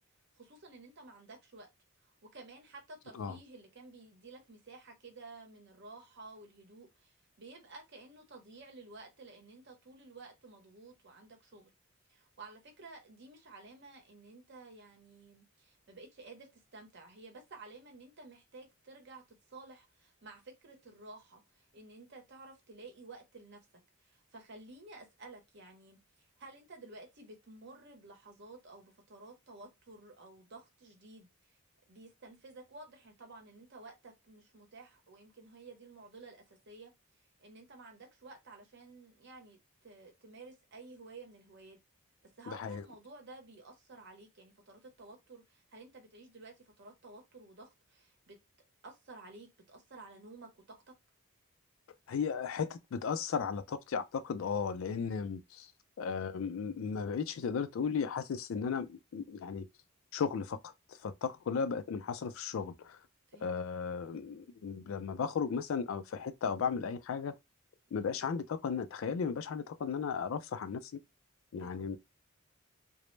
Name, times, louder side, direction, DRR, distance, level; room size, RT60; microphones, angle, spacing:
voice 1, 0.3-1.7 2.0-11.7 12.1-19.2 19.5-23.6 24.0-26.0 26.4-31.6 31.9-36.9 37.4-41.8 42.4-48.4 48.8-50.9 63.3-63.5 68.0-68.2 71.5-71.8, right 3 dB, 55° right, 0.7 m, -53 dB
voice 2, 42.5-42.8 52.1-55.7 56.0-59.7 60.1-60.7 61.0-63.0 63.4-67.3 67.9-70.9 71.5-72.0, left 6 dB, 65° left, 0.3 m, -35 dB
2.0 x 2.0 x 3.0 m
head